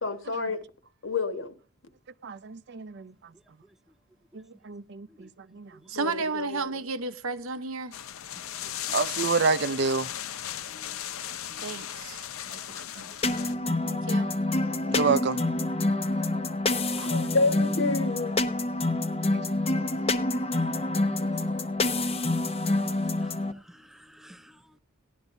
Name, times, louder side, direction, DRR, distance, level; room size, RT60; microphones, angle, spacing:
voice 1, 0.0-0.6 1.0-1.5 5.9-6.8 16.9-18.3, left 3 dB, 65° left, 1.4 m, -29 dB
voice 2, 2.2-3.1 4.3-5.7 8.6-10.1 12.5-13.3 13.6-13.8 14.9-15.4 19.3-19.4, right 4 dB, 55° right, 0.6 m, -29 dB
voice 3, 5.9-7.9 11.6-12.2 13.9-14.3 16.9-17.1, right 4 dB, 85° right, 0.9 m, -33 dB
sound 1, 7.9-13.6, left 11 dB, 90° left, 0.6 m, -36 dB
voice 4, 10.7-11.0 11.5-11.7 14.8-14.9 16.2-16.3 21.2-21.3 23.2-24.8, left 1 dB, ahead, 0.5 m, -55 dB
sound 2, 13.2-23.5, left 2 dB, 30° left, 0.8 m, -27 dB
17.0 x 11.0 x 2.6 m
head